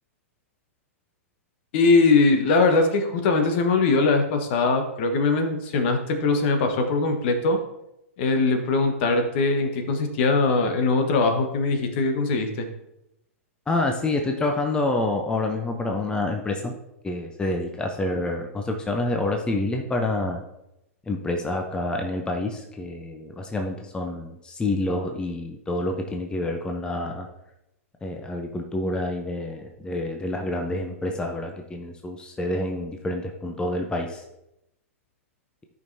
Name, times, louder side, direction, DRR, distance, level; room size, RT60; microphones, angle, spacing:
voice 1, 1.7-7.6 8.2-12.7, left 3 dB, 50° left, 6 dB, 1.2 m, -21 dB
voice 2, 13.7-16.7 17.0-20.4 21.1-27.3 28.0-34.2, left 2 dB, 10° left, 3 dB, 0.8 m, -28 dB
13.5 x 5.4 x 2.8 m, 0.85 s
hypercardioid pair, 105°, 8 cm